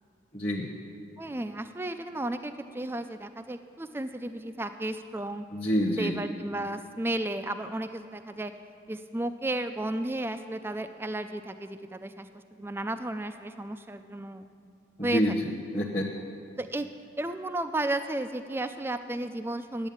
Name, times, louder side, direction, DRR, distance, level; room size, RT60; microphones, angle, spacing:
voice 1, 0.3-0.7 5.5-6.1 15.0-16.1, equal, 25° left, -4 dB, 1.0 m, -27 dB
voice 2, 1.2-5.4 6.0-8.5 8.9-12.3 12.6-14.4 15.0-15.3 16.6-16.9 17.2-19.9, right 1 dB, 10° right, 9 dB, 0.3 m, -33 dB
10.5 x 8.0 x 8.6 m, 2.5 s
head